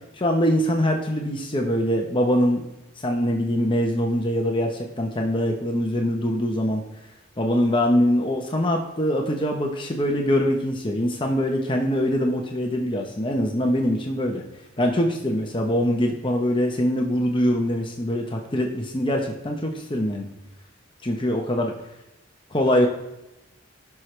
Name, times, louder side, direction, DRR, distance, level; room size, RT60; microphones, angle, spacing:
voice 1, 0.1-2.7 3.0-6.8 7.4-14.4 14.8-20.3 21.0-21.7 22.5-22.9, equal, 25° left, 2 dB, 1.0 m, -23 dB
16.5 x 6.0 x 3.3 m, 0.93 s
head